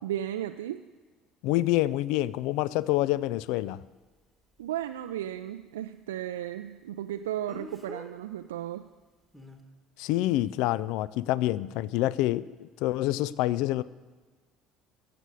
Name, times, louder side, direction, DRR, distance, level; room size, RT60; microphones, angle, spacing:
voice 1, 0.0-0.8 4.6-8.9, right 11 dB, 75° right, 8 dB, 0.3 m, -34 dB
voice 2, 1.4-3.8 10.0-13.8, left 15 dB, 65° left, 19 dB, 0.3 m, -27 dB
Speech, 2.2-2.3 7.5-8.1 9.3-9.6, equal, ahead, 1.9 m, -44 dB
15.5 x 6.8 x 7.6 m, 1.3 s
figure-of-eight pair, 60°, 0 cm